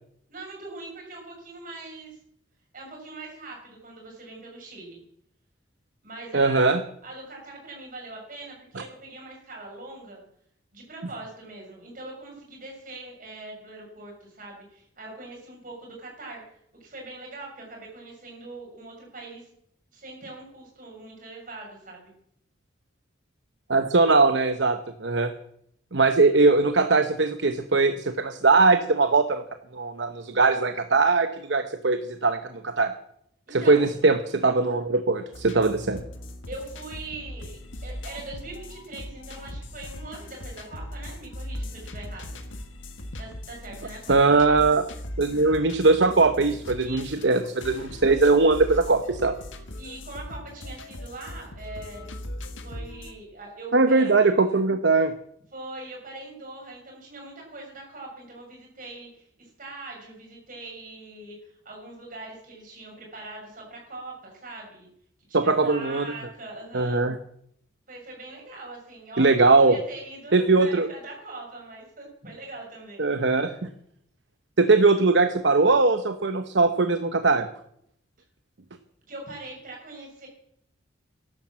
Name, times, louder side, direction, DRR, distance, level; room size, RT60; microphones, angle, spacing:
voice 1, 0.3-2.2 2.7-5.0 6.0-6.7 7.0-10.2 10.7-16.4 16.8-19.5 19.9-22.1 33.5-33.8 36.5-42.4 43.2-44.5 46.8-47.3 49.7-52.2 52.6-54.1 55.5-64.9 65.3-67.0 67.9-73.0 79.1-80.3, right 2 dB, 45° right, 0 dB, 7.1 m, -42 dB
voice 2, 6.3-6.8 23.7-25.3 25.9-29.4 29.7-32.9 33.5-36.0 44.1-44.8 45.2-49.3 53.7-55.1 65.3-66.0 66.7-67.2 69.2-69.7 70.3-70.9 73.0-73.7 74.6-77.5, right 3 dB, 65° right, 9 dB, 0.9 m, -20 dB
sound 1, 35.3-53.1, left 1 dB, 85° left, 1.6 m, -39 dB
13.5 x 12.0 x 7.5 m, 0.70 s
head